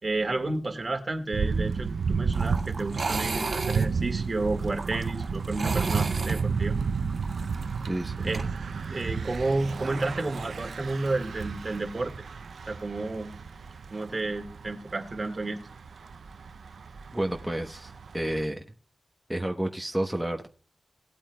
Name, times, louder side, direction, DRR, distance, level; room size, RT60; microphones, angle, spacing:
voice 1, 0.0-6.8 8.2-8.5 8.9-12.1 12.7-13.3 13.9-15.6, right 2 dB, 40° right, 1.8 m, -31 dB
Thunder / Bicycle, 1.3-18.4, right 5 dB, 80° right, 0.5 m, -32 dB
sound 1, 2.3-8.4, right 3 dB, 60° right, 1.7 m, -35 dB
voice 2, 7.9-8.3 17.1-18.6 19.3-20.5, right 1 dB, 5° right, 0.9 m, -30 dB
18.5 x 8.7 x 2.2 m
wide cardioid pair, 80°, 0 cm